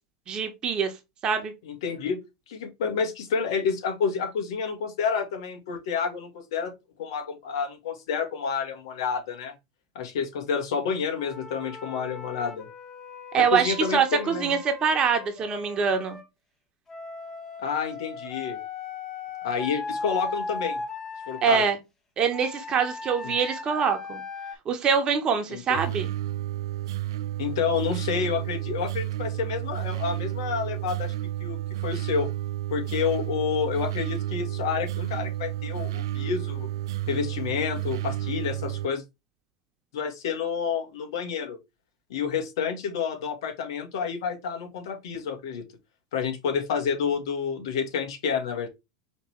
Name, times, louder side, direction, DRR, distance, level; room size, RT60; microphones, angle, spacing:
voice 1, 0.3-0.9 1.2-1.5 13.3-16.2 21.4-21.8 22.2-24.2 24.6-26.1, right 6 dB, 35° right, 1.2 m, -24 dB
voice 2, 1.6-2.2 2.5-6.7 7.0-9.5 9.9-12.6 13.3-14.6 17.6-18.6 19.4-20.8 21.3-21.6 23.2-23.3 25.5-25.8 27.4-31.1 31.4-31.6 31.8-32.3 32.7-36.7 37.1-39.0 39.9-41.6 42.1-45.6 46.1-48.7, left 6 dB, 70° left, 1.4 m, -29 dB
Wind instrument woodwind instrument, 11.1-16.2 16.9-21.5 22.3-24.5, left 3 dB, 20° left, 1.3 m, -37 dB
sound 1, 25.7-38.9, right 14 dB, 75° right, 0.5 m, -31 dB
5.0 x 3.3 x 3.2 m
hypercardioid pair, 100°, 3 cm